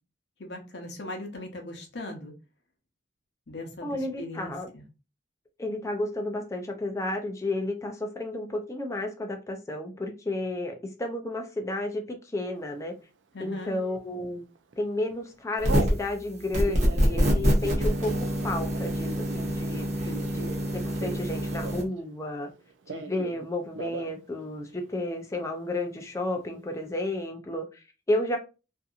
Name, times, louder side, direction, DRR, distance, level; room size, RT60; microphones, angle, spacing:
voice 1, 0.4-2.3 3.5-4.8 13.3-13.8 19.8-20.3, left 2 dB, 65° left, 3 dB, 0.8 m, -39 dB
voice 2, 3.8-4.7 5.6-12.9 13.4-14.4 14.8-19.9 20.3-22.5 22.9-28.4, left 1 dB, 15° left, 3 dB, 0.4 m, -32 dB
Telephone, 13.5-14.0 14.6-14.8 15.1-16.0 16.5-22.0 22.3-23.4 23.7-24.1 24.4-24.5 24.8-25.4, right 4 dB, 80° right, 0.4 m, -39 dB
sound 1, 15.6-16.1 16.5-21.8, equal, 40° right, 0.9 m, -26 dB
2.7 x 2.5 x 2.4 m, 0.30 s
head